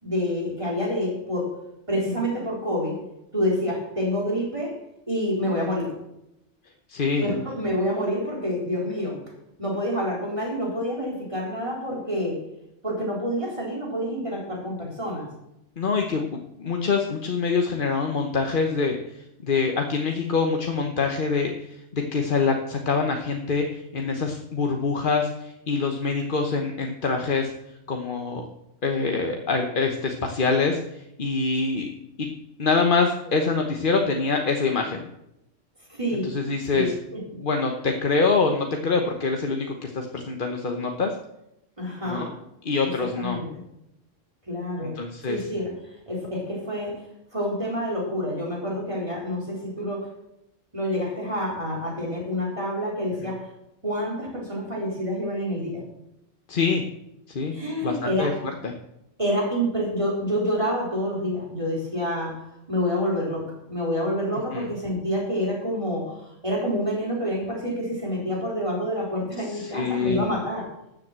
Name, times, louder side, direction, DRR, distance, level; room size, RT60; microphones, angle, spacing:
voice 1, 0.0-1.5 1.9-3.0 3.3-4.7 5.1-5.9 7.1-9.2 9.6-12.4 12.8-15.3 35.9-36.3 36.7-37.2 41.8-42.3 43.2-43.5 44.5-45.0 45.3-45.7 46.1-47.0 47.3-50.1 50.7-53.5 53.8-55.8 57.5-58.4 59.2-62.4 62.7-70.7, equal, 25° right, -2 dB, 3.9 m, -27 dB
voice 2, 6.9-7.3 15.8-16.2 16.6-27.5 27.9-28.4 28.8-31.9 32.2-32.3 32.6-35.0 36.2-36.9 37.4-41.1 42.0-42.3 42.6-43.4 44.8-45.5 56.5-56.8 57.3-57.5 57.8-58.3 58.6-58.7 64.5-64.7 69.5-70.2, left 4 dB, 45° left, 3 dB, 1.2 m, -25 dB
12.5 x 7.8 x 7.5 m, 0.86 s
omnidirectional pair, 1.3 m